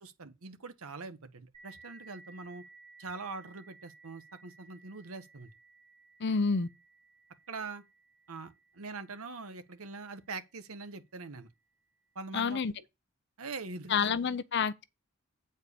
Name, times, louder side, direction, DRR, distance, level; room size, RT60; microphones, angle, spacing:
voice 1, 0.0-2.6 3.0-5.5 7.5-7.8 8.3-11.5 12.1-12.6 13.4-14.1, right 4 dB, 80° right, 1.0 m, -43 dB
sound 1, 1.5-10.8, right 3 dB, 25° right, 4.9 m, -58 dB
voice 2, 6.2-6.7 12.3-12.7 13.9-14.8, left 5 dB, 50° left, 0.6 m, -29 dB
8.5 x 4.4 x 6.7 m
head